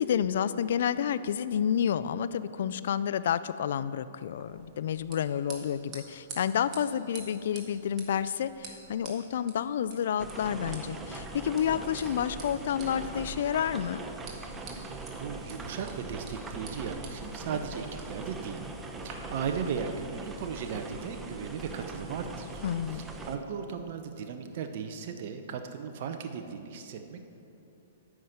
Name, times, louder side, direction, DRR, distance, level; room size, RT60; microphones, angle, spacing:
voice 1, 0.0-14.0 22.6-23.1, left 9 dB, 65° left, 14 dB, 0.3 m, -30 dB
sound 1, 4.3-19.1, right 4 dB, 30° right, 1.8 m, -50 dB
sound 2, 10.2-23.4, right 2 dB, 15° right, 0.8 m, -41 dB
voice 2, 14.7-18.6 19.0-22.6 22.9-27.2, right 6 dB, 55° right, 6 dB, 0.7 m, -37 dB
9.4 x 5.9 x 7.8 m, 2.8 s
hypercardioid pair, 125°, 0 cm